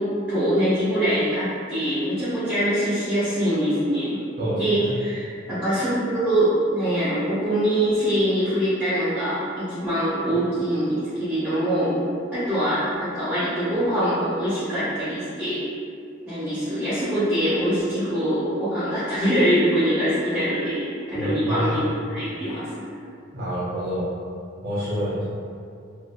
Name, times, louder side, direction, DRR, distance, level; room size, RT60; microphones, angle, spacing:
voice 1, 0.0-4.2 4.6-12.0 12.3-15.6 16.2-22.8, equal, 5° right, -15 dB, 0.7 m, -23 dB
voice 2, 4.4-5.0 21.1-21.9 23.3-24.1 24.6-25.2, equal, 50° right, -11 dB, 0.6 m, -27 dB
2.6 x 2.4 x 2.3 m, 2.4 s
head